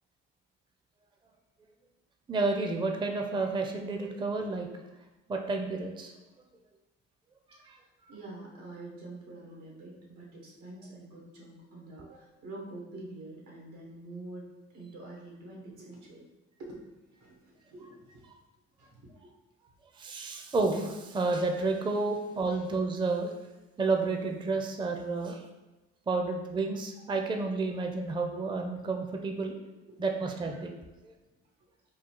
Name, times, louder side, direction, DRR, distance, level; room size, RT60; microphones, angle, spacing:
voice 1, 2.3-4.7 5.3-6.1 7.6-7.8 20.0-23.3 23.8-25.4 26.1-29.5 30.0-30.8, right 3 dB, 15° right, 4 dB, 0.4 m, -30 dB
voice 2, 7.7-14.5 14.7-16.2 16.6-16.8 17.1-18.3 18.8-19.3 22.5-22.6 29.8-30.0, right 2 dB, 90° right, -2 dB, 1.3 m, -46 dB
3.8 x 2.3 x 4.5 m, 1.1 s
cardioid pair, 90°, 30 cm